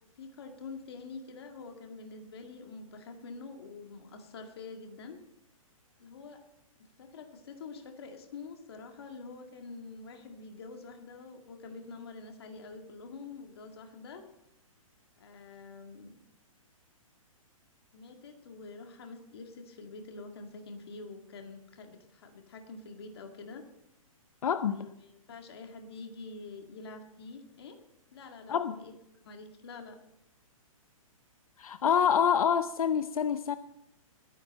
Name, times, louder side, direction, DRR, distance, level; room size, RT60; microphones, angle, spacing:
voice 1, 0.0-5.2 6.0-6.4 7.0-14.2 15.2-16.2 17.9-23.6 24.6-27.8 28.1-28.9 29.3-30.0, left 4 dB, 45° left, 4 dB, 2.0 m, -46 dB
voice 2, 24.4-24.9 28.5-28.8 31.6-33.6, left 8 dB, 80° left, 12 dB, 0.7 m, -27 dB
21.0 x 10.0 x 4.3 m, 0.81 s
hypercardioid pair, 180°, 18 cm